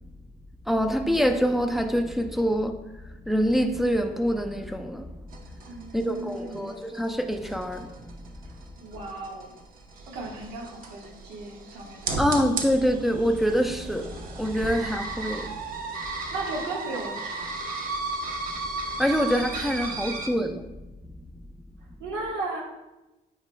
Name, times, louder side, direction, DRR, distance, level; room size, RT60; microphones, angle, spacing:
voice 1, 0.7-2.7 3.3-5.1 5.9-8.2 8.5-8.6 12.2-15.6 19.0-20.7, equal, ahead, 0.5 m, -25 dB
sound 1, 5.3-20.3, right 3 dB, 55° right, 1.0 m, -35 dB
voice 2, 5.7-6.7 8.8-9.5 10.1-12.2 15.3-15.4 16.3-17.6 19.9-20.1 22.0-22.6, right 2 dB, 90° right, 1.5 m, -36 dB
9.0 x 4.8 x 2.2 m
cardioid pair, 110°, 17 cm